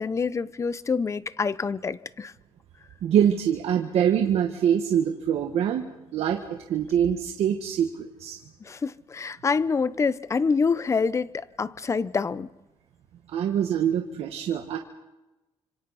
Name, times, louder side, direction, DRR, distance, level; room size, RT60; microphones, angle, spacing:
voice 1, 0.0-2.3 8.6-12.5, left 5 dB, 30° left, 0.8 m, -26 dB
voice 2, 3.0-5.8 6.1-6.4 6.7-8.4 13.3-14.8, right 9 dB, 85° right, 1.6 m, -24 dB
29.5 x 26.5 x 4.2 m
cardioid pair, 120°, 10 cm